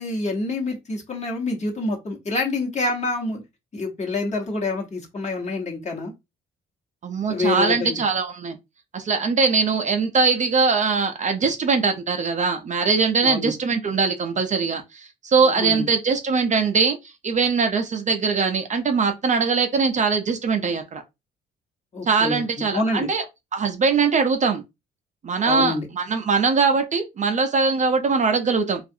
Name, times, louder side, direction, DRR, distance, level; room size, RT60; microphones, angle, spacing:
voice 1, 0.0-3.4 3.7-6.1 7.3-8.0 13.2-13.5 15.4-15.9 21.9-22.4 22.7-23.1 25.4-25.9, left 2 dB, 35° left, 1.0 m, -27 dB
voice 2, 7.0-8.6 8.9-17.0 17.2-21.0 22.1-23.2 23.5-24.6 25.2-28.8, right 5 dB, 40° right, 0.5 m, -21 dB
2.4 x 2.3 x 2.7 m
cardioid pair, 90°, 20 cm